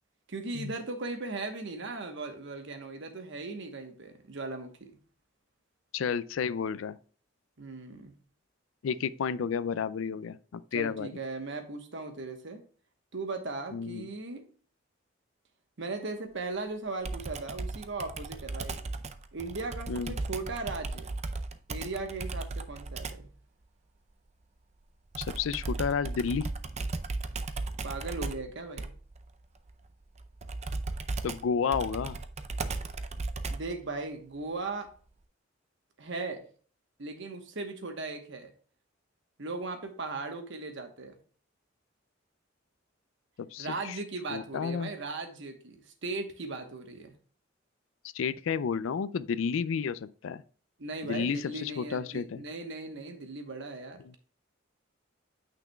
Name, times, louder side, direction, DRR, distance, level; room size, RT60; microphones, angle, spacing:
voice 1, 0.3-4.9 7.6-8.1 10.7-12.6 13.1-14.4 15.8-18.8 19.3-21.1 21.7-23.3 27.8-28.9 33.5-34.9 36.0-36.4 37.0-38.5 39.4-41.2 43.6-47.1 50.8-54.2, right 3 dB, 70° right, 1.1 m, -38 dB
voice 2, 5.9-7.0 8.8-11.1 13.7-14.1 19.9-20.1 25.2-26.5 31.2-32.2 43.4-44.0 44.3-44.9 48.1-50.4 51.0-52.4, left 6 dB, 85° left, 0.4 m, -31 dB
Computer keyboard, 17.0-23.3 25.1-33.8, right 3 dB, 35° right, 0.5 m, -36 dB
9.0 x 5.9 x 2.3 m
head